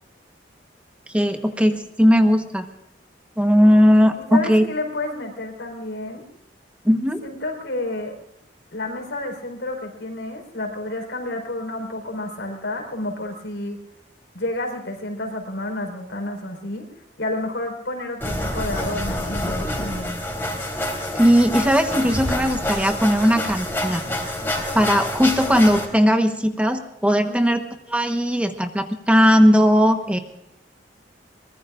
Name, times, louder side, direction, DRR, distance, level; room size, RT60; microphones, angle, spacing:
voice 1, 1.1-2.7 3.4-4.7 6.8-7.2 21.2-24.0 24.7-30.2, equal, 5° right, 6 dB, 1.1 m, -18 dB
voice 2, 4.3-6.2 7.2-8.2 8.7-13.8 14.3-16.9 17.2-20.2 27.2-27.5, left 2 dB, 80° left, 2 dB, 4.7 m, -30 dB
sound 1, 18.2-25.8, left 1 dB, 15° left, 3.9 m, -27 dB
23.5 x 21.0 x 2.5 m, 0.82 s
head